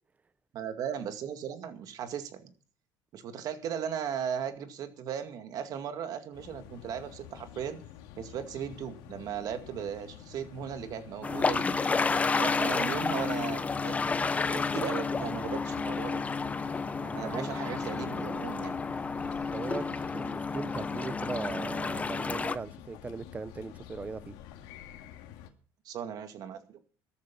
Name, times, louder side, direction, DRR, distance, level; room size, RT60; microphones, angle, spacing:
voice 1, 0.5-2.5 3.1-7.8 8.2-11.7 12.4-16.2 17.0-18.8 25.8-26.8, right 8 dB, 55° right, 2.2 m, -37 dB
sound 1, 6.3-25.5, left 10 dB, 85° left, 2.2 m, -49 dB
sound 2, 11.2-22.6, left 4 dB, 20° left, 0.8 m, -31 dB
voice 2, 19.5-24.3, right 4 dB, 20° right, 0.7 m, -39 dB
13.5 x 12.0 x 5.5 m
cardioid pair, 125°, 8 cm